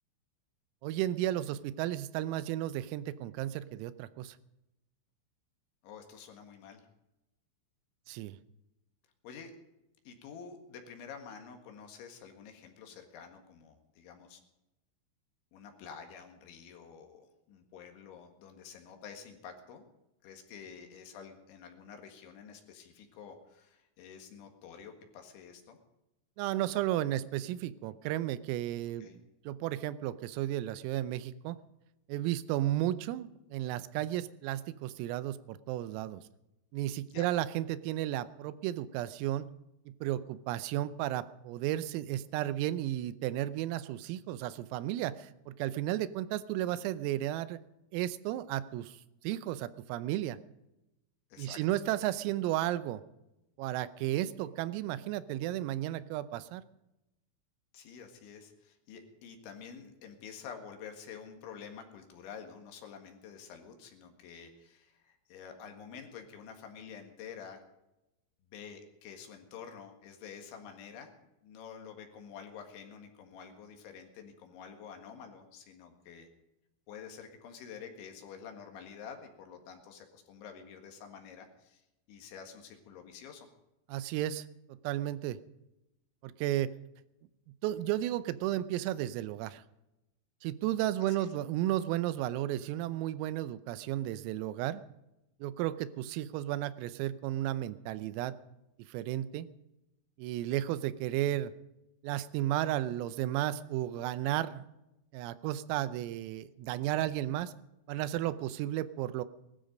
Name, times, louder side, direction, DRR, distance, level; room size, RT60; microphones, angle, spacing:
voice 1, 0.8-4.4 8.1-8.4 26.4-31.6 32.1-36.2 36.7-39.5 39.9-47.6 47.9-49.0 49.2-50.4 51.4-53.0 53.6-56.6 83.9-84.5 84.9-85.4 86.2-86.7 87.6-89.6 90.4-94.8 95.4-98.4 98.9-99.5 100.2-101.5 102.0-104.7 105.1-107.5 107.9-109.3, right 13 dB, 90° right, 15 dB, 3.4 m, -33 dB
voice 2, 5.8-6.9 9.2-9.5 10.1-14.4 15.5-19.9 20.2-25.8 29.0-29.2 37.1-37.3 51.3-51.6 57.7-67.6 68.4-71.1 71.4-76.3 76.9-83.5 91.0-91.3, left 7 dB, 70° left, 4 dB, 3.9 m, -49 dB
19.5 x 13.0 x 5.2 m, 0.92 s
omnidirectional pair, 5.9 m